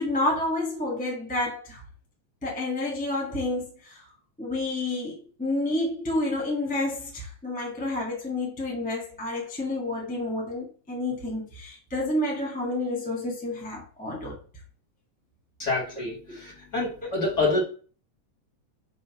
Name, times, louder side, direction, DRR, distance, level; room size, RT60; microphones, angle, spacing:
voice 1, 0.0-1.8 2.4-4.0 4.4-14.4 16.3-16.4 17.0-17.1, left 2 dB, 5° left, 0.8 m, -29 dB
voice 2, 15.6-16.2 16.4-17.6, left 2 dB, 25° left, 1.9 m, -26 dB
5.6 x 4.0 x 5.7 m
omnidirectional pair, 3.6 m